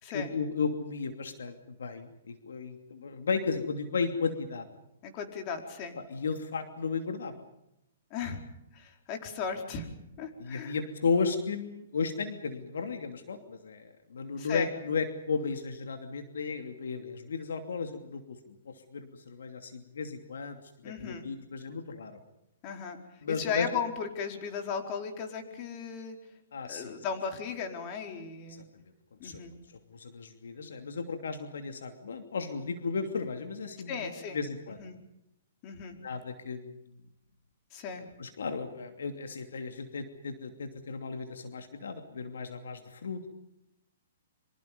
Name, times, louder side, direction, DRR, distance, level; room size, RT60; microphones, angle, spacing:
voice 1, 0.1-4.7 6.1-7.4 10.4-20.6 21.0-22.2 23.2-23.7 26.5-27.0 28.5-28.8 29.2-29.4 29.9-34.8 36.0-36.7 37.9-43.3, left 5 dB, 80° left, 6 dB, 2.8 m, -34 dB
voice 2, 5.0-6.0 8.1-8.4 8.7-10.7 14.4-14.7 20.8-21.2 22.6-23.0 23.3-26.2 26.7-28.6 29.2-29.5 33.9-35.0 35.6-36.0 37.7-38.1, left 6 dB, 35° left, 4 dB, 4.6 m, -36 dB
26.5 x 25.5 x 5.4 m, 0.84 s
hypercardioid pair, 145°, 0 cm